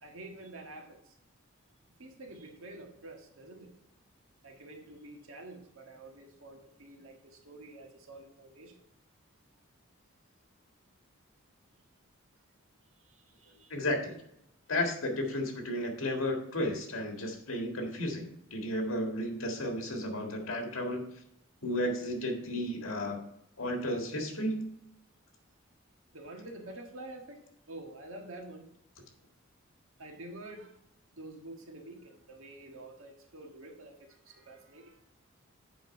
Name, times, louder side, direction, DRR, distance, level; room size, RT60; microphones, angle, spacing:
voice 1, 0.0-1.2 2.0-3.7 4.4-8.8 13.0-13.7 26.1-28.7 30.0-30.8 31.1-35.0, right 2 dB, 80° right, 2 dB, 1.6 m, -48 dB
voice 2, 13.7-14.2 14.7-21.0 21.6-23.3 23.6-24.7, left 1 dB, 85° left, 3 dB, 1.8 m, -33 dB
7.7 x 5.3 x 5.2 m, 0.78 s
head